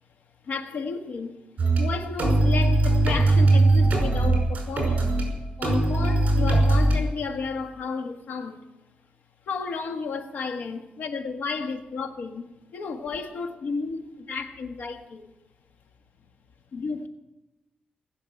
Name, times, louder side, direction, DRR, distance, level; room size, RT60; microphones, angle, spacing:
voice 1, 0.4-1.4 1.8-5.2 5.6-8.6 9.5-15.3 16.7-17.1, left 4 dB, 70° left, 1.4 m, -32 dB
sound 1, 1.6-1.8 2.2-5.3 5.6-7.0, right 2 dB, 45° right, 5.4 m, -20 dB
19.5 x 7.1 x 9.1 m
wide cardioid pair, 135°, 3 cm